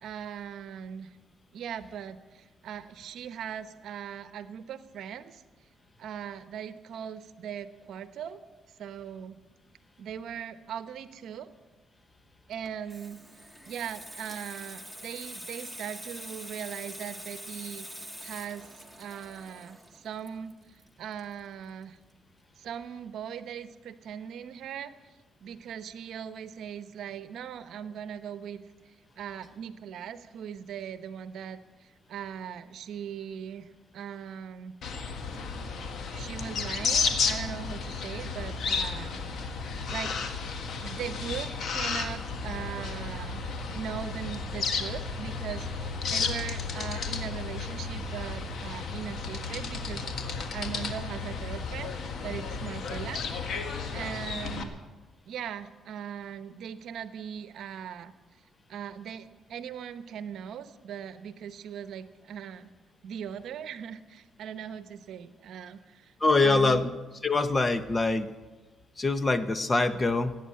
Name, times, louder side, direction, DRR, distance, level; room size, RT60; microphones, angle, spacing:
voice 1, 0.0-1.2 1.5-5.4 6.0-8.4 8.8-9.4 10.0-11.5 12.5-13.2 13.6-17.9 18.2-18.7 19.0-22.0 22.6-24.9 25.4-34.8 36.1-39.2 39.9-40.2 40.8-43.5 43.7-53.3 53.9-54.8 55.2-58.1 58.7-62.7 63.0-66.1 66.4-66.8, right 8 dB, 75° right, 12 dB, 0.8 m, -39 dB
Water tap faucet / Sink (filling or washing), 12.5-21.8 22.1-22.4, equal, 5° left, 1.6 m, -45 dB
sound 1, 34.8-54.6, left 5 dB, 65° left, 1.6 m, -33 dB
voice 2, 66.2-66.9 67.2-68.3 69.0-70.3, left 3 dB, 25° left, 12 dB, 1.0 m, -24 dB
17.0 x 9.2 x 8.6 m, 1.2 s
cardioid pair, 90°, 0 cm